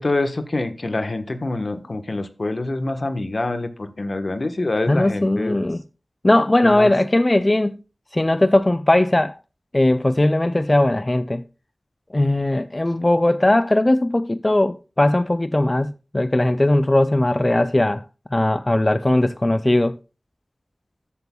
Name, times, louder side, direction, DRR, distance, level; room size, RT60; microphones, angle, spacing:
voice 1, 0.0-5.6 6.6-6.9, left 2 dB, 60° left, 1.2 m, -26 dB
voice 2, 4.9-5.8 6.2-7.8 8.1-9.4 9.7-11.4 12.1-18.0 18.3-20.0, left 1 dB, 30° left, 0.4 m, -19 dB
13.5 x 8.1 x 2.3 m
cardioid pair, 45°, 0 cm